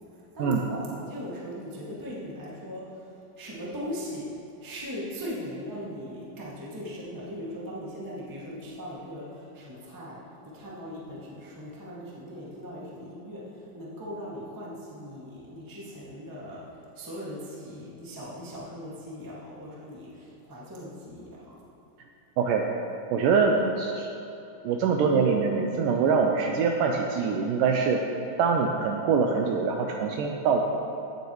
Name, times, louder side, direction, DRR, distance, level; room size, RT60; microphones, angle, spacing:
voice 1, 0.3-4.3 4.6-10.2 10.5-16.6 16.9-21.5, equal, 20° right, -7 dB, 0.5 m, -39 dB
voice 2, 22.4-22.7 23.1-24.1 24.6-28.0 28.4-30.6, right 5 dB, 80° right, 2 dB, 1.9 m, -24 dB
16.0 x 7.9 x 3.1 m, 2.8 s
omnidirectional pair, 4.3 m